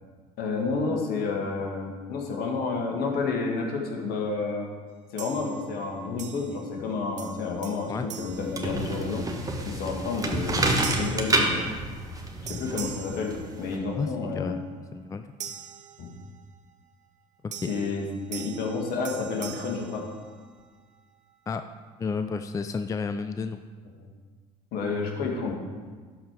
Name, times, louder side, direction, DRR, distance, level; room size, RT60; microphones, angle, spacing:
voice 1, 0.4-4.7 5.1-9.2 9.7-11.6 12.4-14.6 16.0-16.2 17.7-18.0 18.3-20.0 24.0-24.1 24.7-25.5, left 4 dB, 60° left, 0 dB, 1.9 m, -30 dB
sound 1, 5.2-5.8 6.2-6.9 7.2-9.3 9.8-10.1 10.8-12.2 12.5-14.1 15.4-16.6 17.5-20.8, right 8 dB, 40° right, 0.9 m, -43 dB
sound 2, 8.3-13.8, right 2 dB, 20° right, 1.5 m, -29 dB
voice 2, 14.0-14.6 14.9-15.3 17.4-17.7 21.5-21.6 22.0-23.6, left 5 dB, 20° left, 9 dB, 0.4 m, -31 dB
12.5 x 4.8 x 5.1 m, 1.5 s
hypercardioid pair, 65°, 18 cm